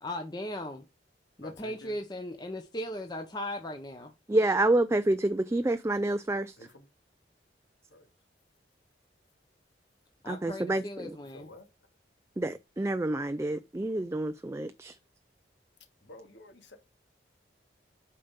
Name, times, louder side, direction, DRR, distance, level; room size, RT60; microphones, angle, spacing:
voice 1, 0.0-0.8 1.4-4.1 10.2-11.5, left 1 dB, 25° left, 0.9 m, -37 dB
voice 2, 1.4-2.0 6.6-6.9 7.9-8.1 11.3-11.7 16.0-16.8, left 2 dB, 85° left, 2.0 m, -50 dB
voice 3, 4.3-6.5 10.3-11.2 12.4-14.9, right 2 dB, 15° right, 0.3 m, -28 dB
8.5 x 5.6 x 3.6 m
head